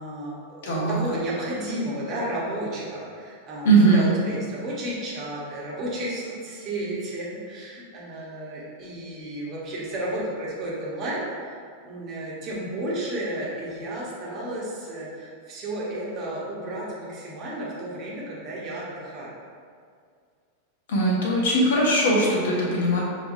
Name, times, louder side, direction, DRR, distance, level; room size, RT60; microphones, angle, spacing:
voice 1, 0.0-11.6 11.8-19.3, right 1 dB, 35° right, -5 dB, 1.2 m, -32 dB
voice 2, 0.6-1.0 3.6-4.1 20.9-23.0, right 2 dB, 55° left, -3 dB, 0.9 m, -20 dB
5.9 x 3.1 x 2.7 m, 2.2 s
figure-of-eight pair, 90°, 0 cm